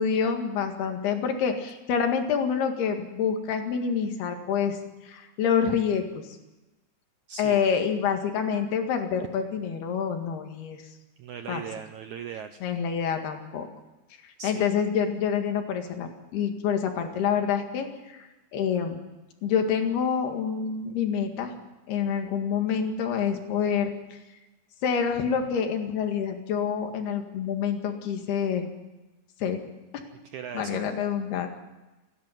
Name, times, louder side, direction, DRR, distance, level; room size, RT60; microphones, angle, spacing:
voice 1, 0.0-4.8 5.0-6.1 7.4-10.8 11.5-11.6 12.6-13.7 14.4-19.0 19.4-21.5 21.9-24.2 24.8-28.7 29.4-29.6 30.5-31.5, left 7 dB, 85° left, 5 dB, 4.1 m, -27 dB
voice 2, 7.3-7.6 11.2-12.6 14.4-14.7 30.2-30.8, right 7 dB, 80° right, 8 dB, 1.7 m, -38 dB
28.0 x 11.0 x 9.2 m, 1.1 s
omnidirectional pair, 4.4 m